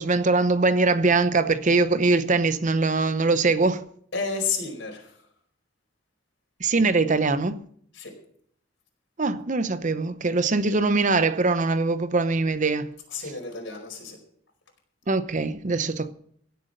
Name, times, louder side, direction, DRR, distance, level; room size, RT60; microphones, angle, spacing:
voice 1, 0.0-3.9 6.6-7.6 9.2-12.9 15.1-16.1, right 3 dB, 40° right, 0.7 m, -22 dB
voice 2, 4.1-5.1 7.9-8.1 13.1-14.2, left 5 dB, 65° left, 4.9 m, -31 dB
16.5 x 8.1 x 6.5 m
head